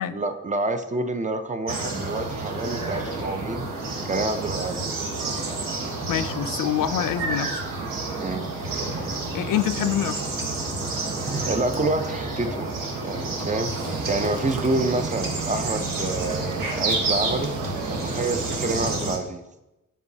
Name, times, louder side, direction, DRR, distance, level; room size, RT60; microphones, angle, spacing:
voice 1, 0.1-3.6 4.1-4.9 8.2-8.4 11.4-12.7 13.0-17.5 17.9-19.4, right 2 dB, 25° right, 8 dB, 0.4 m, -28 dB
sound 1, 1.7-19.2, right 3 dB, 80° right, 1.2 m, -29 dB
voice 2, 6.1-7.6 9.3-10.2, left 11 dB, 75° left, 11 dB, 0.5 m, -25 dB
Cricket / Waves surf, 13.9-19.0, right 3 dB, 65° right, 0.8 m, -36 dB
9.9 x 3.8 x 2.7 m, 0.95 s
wide cardioid pair, 115°, 33 cm